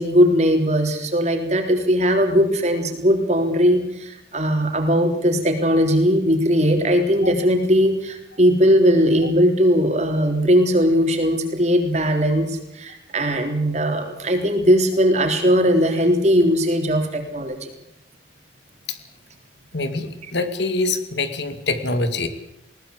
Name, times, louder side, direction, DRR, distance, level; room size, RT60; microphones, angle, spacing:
voice 1, 0.0-17.7, equal, 35° right, 4 dB, 3.7 m, -19 dB
voice 2, 19.7-22.3, left 3 dB, 65° left, 9 dB, 2.3 m, -24 dB
21.0 x 19.0 x 8.1 m, 0.83 s
head